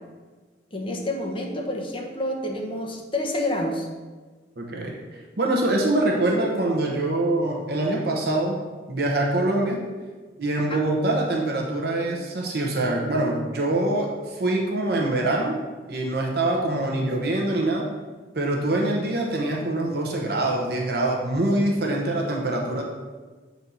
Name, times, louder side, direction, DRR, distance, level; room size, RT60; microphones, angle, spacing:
voice 1, 0.7-3.9 10.7-10.8 22.1-22.3, left 1 dB, 30° left, 0 dB, 1.1 m, -29 dB
voice 2, 4.6-5.0 5.4-8.6 8.9-9.8 10.4-15.6 15.9-17.9 18.3-22.8, right 2 dB, 60° right, 0 dB, 1.0 m, -24 dB
7.8 x 4.2 x 5.6 m, 1.3 s
head